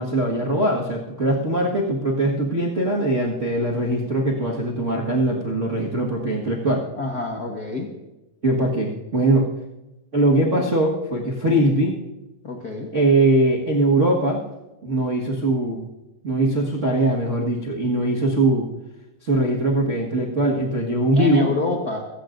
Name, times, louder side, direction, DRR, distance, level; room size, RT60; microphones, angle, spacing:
voice 1, 0.0-6.8 8.4-9.5 10.1-12.0 12.9-14.4 14.8-15.9 16.2-18.7 19.2-21.5, right 1 dB, 45° right, -4 dB, 0.9 m, -21 dB
voice 2, 7.0-7.9 12.4-12.9 21.1-22.0, left 2 dB, 60° left, 1 dB, 1.0 m, -27 dB
27.0 x 16.0 x 2.6 m, 1.0 s
omnidirectional pair, 4.0 m